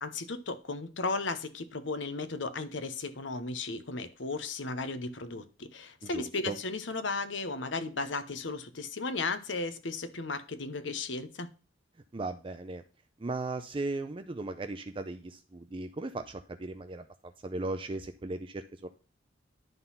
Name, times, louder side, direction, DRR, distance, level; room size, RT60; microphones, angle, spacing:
voice 1, 0.0-11.5, left 3 dB, 70° left, 1.0 m, -35 dB
voice 2, 6.0-6.6 12.1-12.8 13.2-18.9, right 2 dB, 30° right, 0.5 m, -37 dB
11.0 x 3.9 x 5.6 m
head